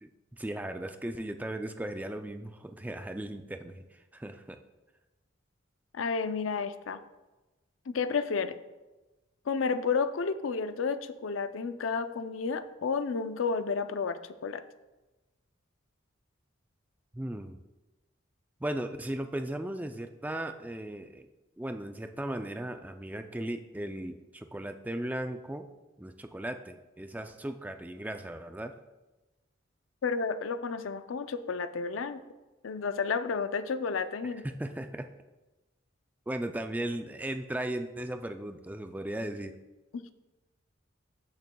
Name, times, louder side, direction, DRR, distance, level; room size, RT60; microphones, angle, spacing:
voice 1, 0.0-4.6 17.1-17.6 18.6-21.3 21.6-25.7 26.0-28.8 34.4-35.1 36.3-39.5, right 1 dB, 10° right, 7 dB, 0.3 m, -37 dB
voice 2, 5.9-7.0 7.9-8.6 9.5-14.6 30.0-32.2 32.6-34.4 39.9-40.0, left 5 dB, 80° left, 11 dB, 0.5 m, -31 dB
14.5 x 6.6 x 2.3 m, 1.1 s
head